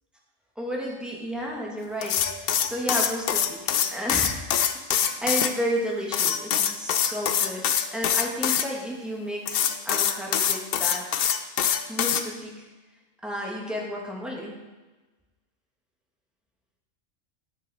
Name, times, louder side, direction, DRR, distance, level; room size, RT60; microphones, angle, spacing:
voice 1, 0.6-4.5 4.9-11.0 11.9-12.6 13.2-14.5, equal, ahead, -3 dB, 1.6 m, -32 dB
sound 1, 2.0-5.5 6.1-8.7 9.5-12.2, left 9 dB, 60° left, 0.6 m, -24 dB
9.9 x 6.4 x 4.2 m, 1.2 s
omnidirectional pair, 1.3 m